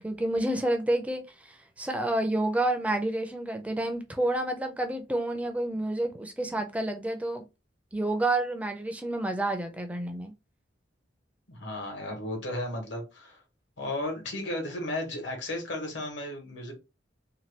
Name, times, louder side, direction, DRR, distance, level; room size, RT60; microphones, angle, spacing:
voice 1, 0.0-7.4 7.9-10.3, right 1 dB, 10° right, 0.4 m, -29 dB
voice 2, 11.5-13.4 13.8-16.7, left 1 dB, 85° left, 1.2 m, -34 dB
2.8 x 2.2 x 3.2 m
head